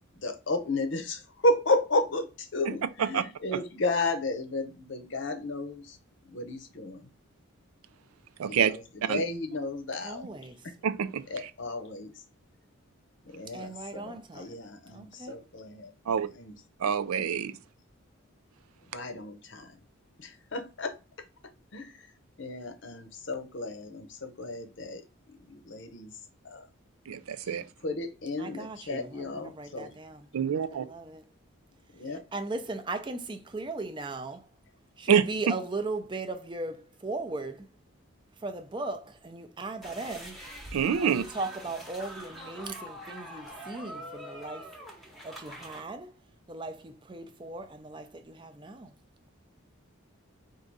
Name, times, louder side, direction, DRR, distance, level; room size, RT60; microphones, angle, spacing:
voice 1, 0.2-2.3 2.5-5.8 6.3-7.0 8.5-8.6 9.1-10.2 11.3-12.1 13.3-15.9 16.4-16.5 18.9-19.7 20.5-20.9 21.7-21.9 22.4-25.0 25.5-26.1 26.5-26.6 27.8-29.9 32.0-32.2, left 2 dB, 55° left, 0.7 m, -32 dB
voice 2, 2.7-3.2 3.5-3.6 8.4-8.7 9.1-9.2 10.8-11.5 16.1-16.3 16.8-17.5 27.1-27.6 30.3-30.8 35.1-35.2 40.7-41.2, right 7 dB, 85° right, 0.4 m, -27 dB
voice 3, 10.0-10.7 13.5-14.6 14.9-15.4 28.4-30.3 30.7-31.2 32.0-34.5 35.0-37.7 38.4-40.4 41.0-44.7 45.2-46.2 46.5-48.9, right 2 dB, 20° right, 0.5 m, -38 dB
sound 1, 39.8-45.8, equal, ahead, 0.9 m, -44 dB
4.6 x 2.6 x 3.9 m
head